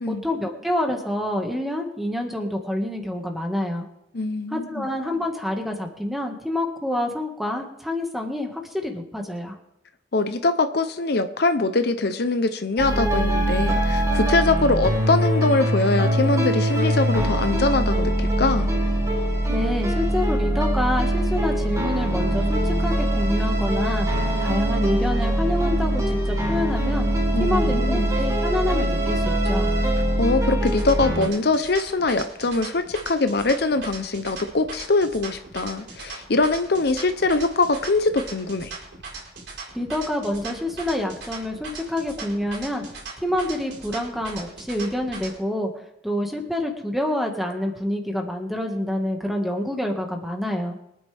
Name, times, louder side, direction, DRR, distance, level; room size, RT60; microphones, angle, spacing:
voice 1, 0.1-3.9 4.5-9.6 19.5-24.1 24.4-27.1 27.4-29.7 39.7-42.8 43.2-45.7 46.0-50.8, left 1 dB, ahead, 2 dB, 1.9 m, -27 dB
voice 2, 4.1-4.9 10.1-18.7 27.3-28.1 30.2-38.7, left 3 dB, 65° left, 9 dB, 0.8 m, -23 dB
sound 1, 12.8-31.3, right 1 dB, 20° right, 4.2 m, -22 dB
sound 2, 30.6-45.4, right 4 dB, 80° right, 4.8 m, -39 dB
24.0 x 9.6 x 3.6 m, 0.80 s
head